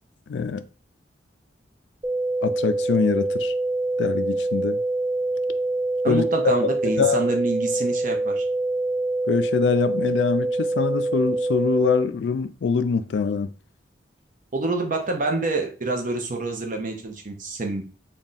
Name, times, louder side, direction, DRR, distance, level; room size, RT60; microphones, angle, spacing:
voice 1, 0.3-0.6 2.4-3.5 4.0-4.8 6.1-6.2 7.0-7.2 9.3-13.5, left 5 dB, 75° left, 0.3 m, -24 dB
sound 1, 2.0-12.0, right 2 dB, 25° right, 0.3 m, -25 dB
voice 2, 6.0-8.5 14.5-17.9, right 2 dB, 50° right, 0.8 m, -27 dB
3.5 x 2.3 x 4.0 m
head